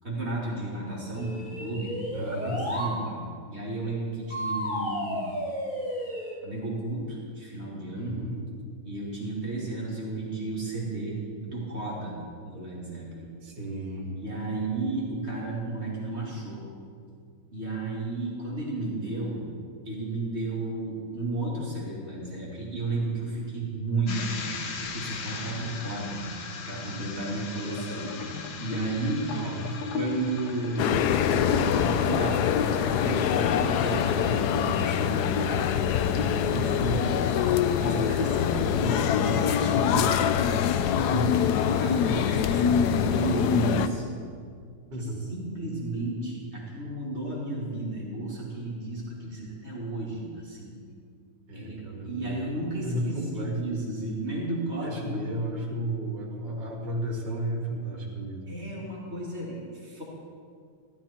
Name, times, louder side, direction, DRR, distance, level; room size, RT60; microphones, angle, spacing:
voice 1, 0.0-5.2 6.4-8.2 8.8-11.2 11.4-12.2 12.4-13.3 14.1-16.7 17.5-19.4 19.8-28.1 28.6-29.3 29.9-37.2 37.8-40.2 40.9-41.3 41.6-44.0 45.0-50.7 51.5-55.2 58.5-60.0, right 2 dB, 30° right, -5 dB, 2.9 m, -33 dB
sound 1, 1.1-3.0 4.3-6.4, equal, 25° left, 2.4 m, -32 dB
voice 2, 2.1-2.6 7.9-8.4 13.4-14.1 29.3-29.8 41.1-41.2 44.9-45.2 51.5-52.3 52.8-53.6 54.8-58.5, right 1 dB, 55° right, -3 dB, 2.7 m, -33 dB
sound 2, 24.1-36.8 37.2-37.5 37.8-38.2, left 4 dB, 60° left, 1.5 m, -37 dB
sound 3, 30.8-43.9, left 9 dB, 75° left, 0.9 m, -24 dB
15.0 x 12.5 x 4.4 m, 2.2 s
omnidirectional pair, 2.2 m